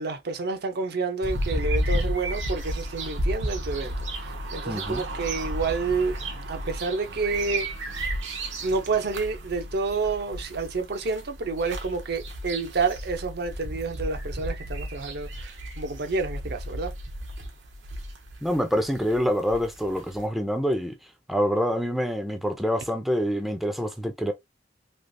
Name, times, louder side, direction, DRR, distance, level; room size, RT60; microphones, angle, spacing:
voice 1, 0.0-6.2 6.5-7.7 8.6-16.9, right 4 dB, 60° right, 0.6 m, -29 dB
sound 1, 1.2-20.3, right 1 dB, 85° right, 1.0 m, -33 dB
voice 2, 4.7-5.0 18.4-20.9 21.3-24.3, equal, ahead, 0.5 m, -26 dB
3.3 x 2.9 x 2.6 m
head